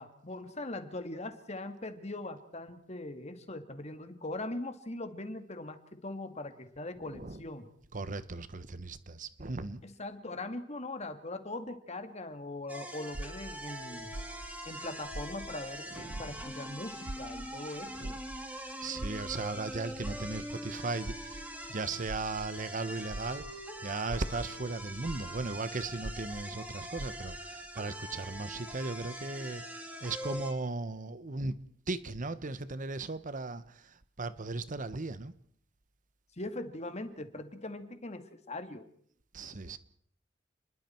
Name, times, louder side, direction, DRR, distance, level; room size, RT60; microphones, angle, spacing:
voice 1, 0.0-7.7 9.8-14.1 14.7-18.2 36.4-38.9, left 2 dB, 35° left, 2.1 m, -41 dB
voice 2, 7.9-9.8 16.0-16.3 18.0-18.2 18.8-35.3 39.3-39.8, right 3 dB, 45° right, 1.1 m, -37 dB
sound 1, 12.7-30.5, right 1 dB, 10° right, 3.5 m, -43 dB
sound 2, 13.1-15.8 16.1-23.6 24.0-27.5, right 1 dB, 70° right, 1.0 m, -44 dB
29.5 x 21.5 x 4.5 m
head